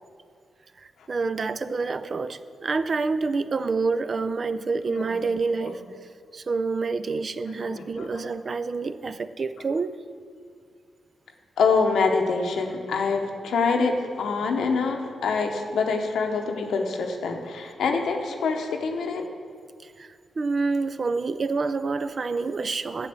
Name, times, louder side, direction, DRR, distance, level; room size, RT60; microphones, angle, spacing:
voice 1, 0.8-5.8 6.3-10.0 19.8-23.1, right 4 dB, 50° right, 13 dB, 0.4 m, -28 dB
voice 2, 7.4-8.3 11.6-19.3, left 4 dB, 80° left, 3 dB, 0.9 m, -25 dB
7.5 x 7.1 x 6.9 m, 2.1 s
supercardioid pair, 55°, 0 cm